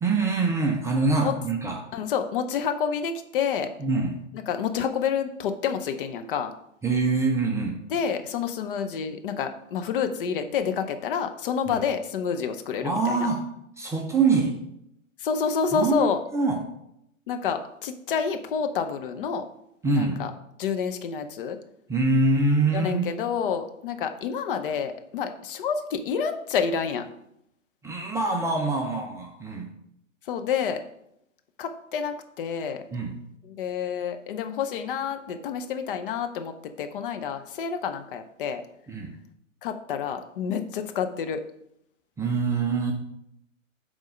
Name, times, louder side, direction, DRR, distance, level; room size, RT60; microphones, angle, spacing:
voice 1, 0.0-1.8 3.8-4.2 6.8-7.8 11.7-11.8 12.8-13.5 13.8-14.6 15.7-16.6 19.8-20.2 21.9-23.0 27.8-29.7 32.9-33.2 38.9-39.1 42.2-42.9, right 3 dB, 5° right, 0 dB, 0.6 m, -24 dB
voice 2, 1.9-3.7 4.5-6.5 7.9-13.3 15.2-16.2 17.3-19.4 19.9-20.3 20.6-21.6 22.7-27.1 30.3-30.8 31.6-32.8 33.6-38.6 39.6-41.4, left 7 dB, 45° left, 7 dB, 0.8 m, -28 dB
8.3 x 3.6 x 5.2 m, 0.76 s
figure-of-eight pair, 120°, 39 cm